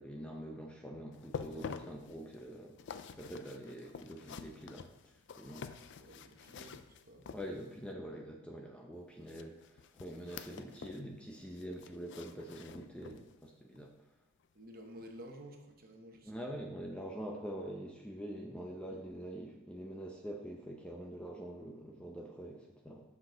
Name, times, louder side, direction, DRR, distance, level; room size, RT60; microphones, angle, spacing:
voice 1, 0.0-2.8 3.1-4.9 5.4-5.7 7.3-13.9 16.3-23.0, equal, 5° left, 1 dB, 0.6 m, -45 dB
sound 1, 1.1-7.9 9.3-11.1 11.4-13.3 13.8-13.9 14.4-14.5, left 6 dB, 55° left, 0.4 m, -48 dB
voice 2, 6.0-7.2 14.5-16.4, equal, 45° right, 2 dB, 1.0 m, -52 dB
7.3 x 6.0 x 3.9 m, 0.95 s
head